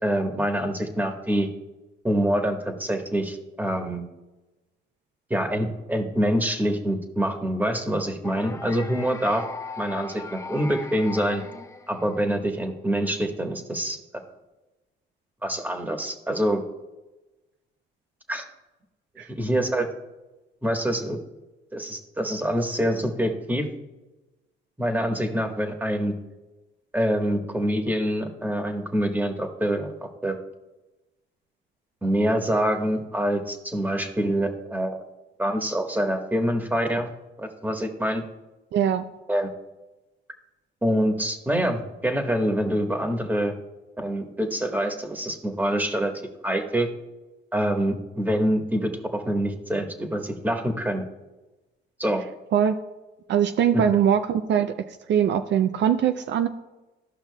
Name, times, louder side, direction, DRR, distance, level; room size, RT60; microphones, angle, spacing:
voice 1, 0.0-1.5 2.0-4.0 5.3-9.4 9.8-11.4 11.9-14.0 15.4-16.6 18.3-18.4 19.3-19.9 20.6-21.2 21.7-23.7 24.8-26.1 26.9-29.9 30.2-30.4 32.0-35.0 35.4-37.1 37.4-38.2 39.3-39.5 40.8-43.5 44.0-46.1 46.4-46.9 47.5-51.1 52.0-52.2 53.7-54.0, equal, 10° right, 4 dB, 1.3 m, -25 dB
sound 1, 8.2-12.4, left 4 dB, 15° left, 0.5 m, -39 dB
voice 2, 38.7-39.0 52.5-52.7 53.3-56.5, right 9 dB, 65° right, 8 dB, 0.4 m, -22 dB
14.0 x 5.7 x 2.3 m, 1.1 s
cardioid pair, 90°, 20 cm